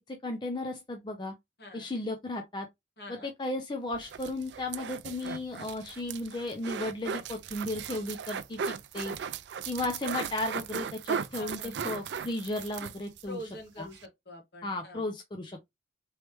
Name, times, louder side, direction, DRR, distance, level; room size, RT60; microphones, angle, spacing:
voice 1, 0.1-1.3 1.7-2.7 3.1-9.1 9.7-13.4 13.8-13.9 14.6-15.7, left 2 dB, 25° left, 0.4 m, -35 dB
voice 2, 3.0-3.3 11.3-11.9 13.2-15.0, left 1 dB, 60° left, 1.6 m, -45 dB
sound 1, 3.9-13.3 13.6-13.7 13.9-14.1, right 7 dB, 75° right, 0.4 m, -37 dB
3.2 x 3.1 x 3.0 m
head